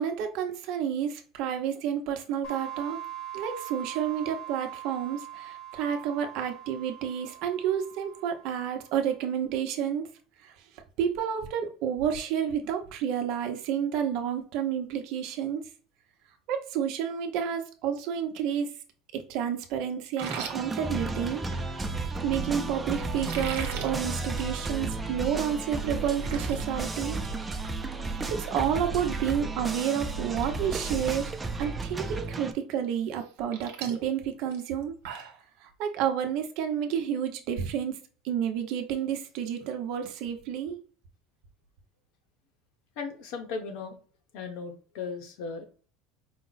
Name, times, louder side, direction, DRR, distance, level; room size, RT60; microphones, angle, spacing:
voice 1, 0.0-3.0 3.3-10.1 10.4-10.5 11.0-15.6 16.5-18.7 19.1-21.4 22.2-27.2 28.4-31.3 31.6-35.0 35.6-38.0 38.2-40.8, right 8 dB, 50° right, 0.7 m, -30 dB
sound 1, 2.4-8.9, right 11 dB, 30° left, 1.0 m, -42 dB
sound 2, 20.1-21.6 23.1-23.9 24.3-24.5 24.9-25.0 25.5-25.6 25.9-26.6 27.0-27.3 27.6-27.8 29.6-29.7 30.2-30.5 30.7-31.2 31.7-31.8 33.1-35.4, right 7 dB, 75° right, 1.0 m, -40 dB
sound 3, 20.2-32.5, right 3 dB, 10° right, 0.3 m, -33 dB
voice 2, 43.0-44.0 44.3-45.6, left 4 dB, 55° left, 0.9 m, -37 dB
5.0 x 2.0 x 3.9 m
cardioid pair, 175°, 0 cm